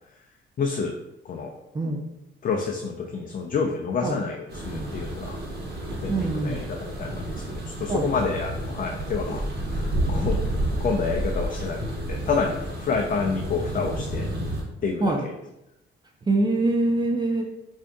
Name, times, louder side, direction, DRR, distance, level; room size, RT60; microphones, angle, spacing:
voice 1, 0.6-1.0 1.2-1.5 2.4-5.4 5.9-14.3 14.8-15.1, left 5 dB, 45° left, 2 dB, 0.4 m, -29 dB
voice 2, 1.7-2.1 4.0-4.2 6.1-6.7 7.9-8.1 15.0-15.3 16.2-17.4, right 2 dB, 20° right, 1 dB, 0.5 m, -24 dB
sound 1, 4.5-14.6, right 1 dB, 55° right, 1.2 m, -30 dB
4.8 x 2.6 x 2.3 m, 0.89 s
cardioid pair, 90°, 20 cm